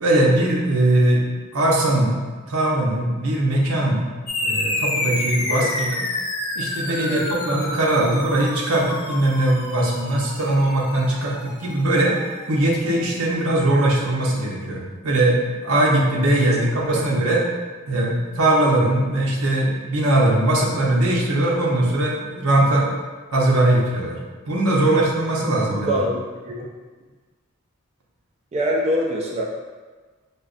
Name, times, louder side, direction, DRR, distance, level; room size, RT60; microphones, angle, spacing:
voice 1, 0.0-1.2 1.5-2.2 2.5-4.0 4.4-6.0 6.6-12.1 12.5-15.4 15.6-17.4 17.9-22.9 23.3-24.2 24.5-25.9, right 1 dB, 90° right, -2 dB, 0.7 m, -20 dB
sound 1, 4.3-13.2, left 2 dB, 90° left, 0.7 m, -29 dB
voice 2, 25.7-26.7 28.5-29.4, equal, 30° right, -2 dB, 0.4 m, -24 dB
5.0 x 2.2 x 2.4 m, 1.4 s
head